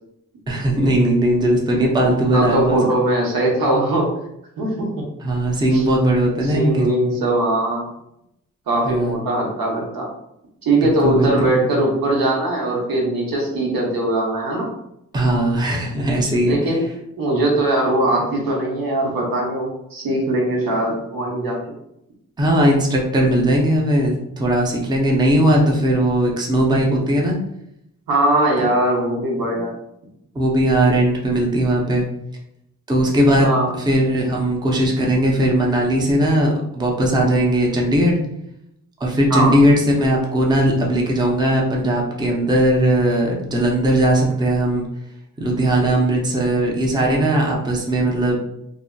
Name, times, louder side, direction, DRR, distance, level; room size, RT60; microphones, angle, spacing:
voice 1, 0.5-2.8 5.2-6.9 8.9-9.2 10.8-11.5 15.1-16.6 22.4-27.3 30.4-32.0 32.9-33.5 33.8-38.2 39.0-44.9 45.4-48.4, right 1 dB, 15° right, -1 dB, 0.5 m, -18 dB
voice 2, 2.3-4.1 4.6-5.0 5.7-5.8 6.4-7.9 8.7-10.1 10.6-14.7 16.4-16.8 17.2-21.6 26.7-26.8 28.1-29.7 33.4-33.7 39.3-39.5 45.7-45.8, right 1 dB, 85° right, -2 dB, 0.9 m, -20 dB
2.6 x 2.5 x 2.2 m, 0.79 s
wide cardioid pair, 110°, 33 cm